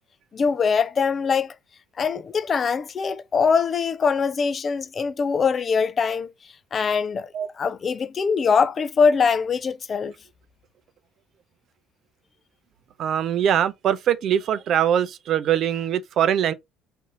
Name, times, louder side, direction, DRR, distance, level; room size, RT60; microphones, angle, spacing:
voice 1, 0.3-1.5 2.0-6.3 6.7-7.3 7.6-10.1, left 5 dB, 35° left, 0.4 m, -22 dB
voice 2, 13.0-16.5, right 10 dB, 50° right, 0.5 m, -22 dB
3.9 x 2.7 x 4.8 m
figure-of-eight pair, 55°, 0 cm